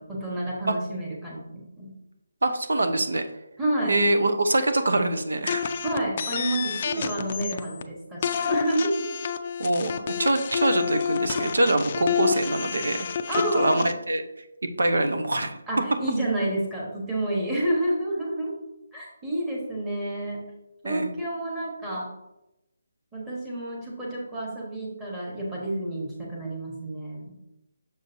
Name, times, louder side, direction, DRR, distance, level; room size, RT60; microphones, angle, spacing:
voice 1, 0.0-1.9 3.6-3.9 5.8-9.1 13.3-13.9 15.7-18.5 18.9-20.4 20.8-22.1 23.1-27.3, right 1 dB, 10° right, -5 dB, 1.2 m, -29 dB
voice 2, 2.4-3.2 3.9-5.7 6.9-7.0 9.6-13.1 13.5-14.2 14.8-15.6 20.8-21.1, right 2 dB, 90° right, 8 dB, 0.7 m, -24 dB
sound 1, 5.5-7.8 8.2-13.9, left 7 dB, 30° left, 0.4 m, -28 dB
6.7 x 6.3 x 2.7 m, 0.89 s
hypercardioid pair, 175°, 0 cm